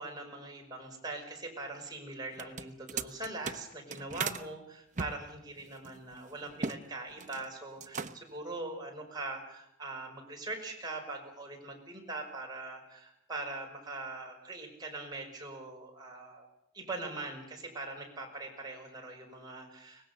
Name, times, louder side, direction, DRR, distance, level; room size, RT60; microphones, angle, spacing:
voice 1, 0.0-16.5 16.7-20.1, right 2 dB, 20° right, 1 dB, 5.5 m, -42 dB
sound 1, 2.3-4.5 5.0-6.8 7.1-7.5 7.8-8.4, right 5 dB, 40° right, 0.9 m, -38 dB
23.5 x 20.0 x 6.9 m, 0.78 s
head